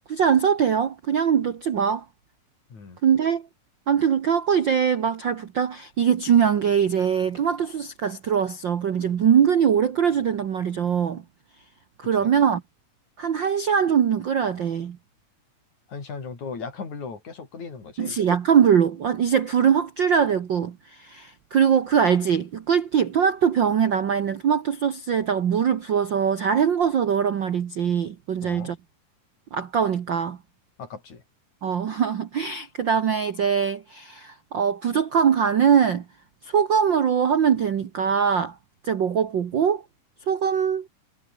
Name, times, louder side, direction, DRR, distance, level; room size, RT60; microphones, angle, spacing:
voice 1, 0.1-2.0 3.0-3.5 3.9-11.2 12.0-12.6 13.2-15.0 18.0-28.8 29.5-30.4 31.6-36.0 36.4-38.5 38.8-39.8 40.3-40.9, right 7 dB, 65° right, 1.1 m, -22 dB
voice 2, 15.9-18.2 28.4-28.7 30.8-31.2, left 5 dB, 60° left, 6.6 m, -37 dB
omnidirectional pair, 3.8 m